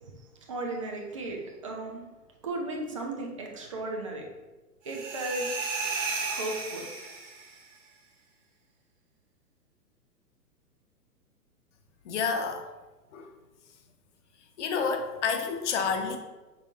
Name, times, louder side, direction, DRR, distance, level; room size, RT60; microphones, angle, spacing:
voice 1, 0.5-2.0 2.4-4.2 4.9-5.5 6.3-6.9, right 2 dB, 25° right, 0 dB, 0.3 m, -35 dB
sound 1, 4.9-7.6, right 4 dB, 50° right, 1.2 m, -34 dB
voice 2, 12.0-12.7 13.1-13.3 14.6-16.2, left 5 dB, 50° left, 5 dB, 0.7 m, -29 dB
5.2 x 3.9 x 2.3 m, 1.2 s
hypercardioid pair, 125°, 46 cm